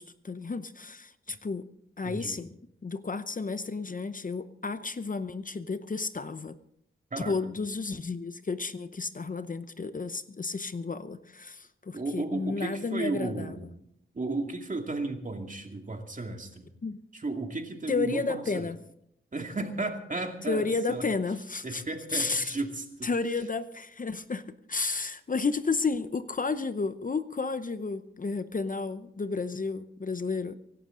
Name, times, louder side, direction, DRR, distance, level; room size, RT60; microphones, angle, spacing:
voice 1, 0.0-1.7 2.0-2.5 2.8-6.6 7.3-13.5 16.8-17.0 17.9-18.8 20.5-21.8 22.1-22.5 23.0-30.6, left 4 dB, 40° left, 12 dB, 0.8 m, -32 dB
voice 2, 2.0-2.4 7.1-7.5 11.9-13.6 14.1-16.7 17.1-18.7 19.3-21.1 21.6-23.1, right 2 dB, 40° right, 4 dB, 2.3 m, -34 dB
24.5 x 12.0 x 3.8 m, 0.74 s
wide cardioid pair, 95°, 21 cm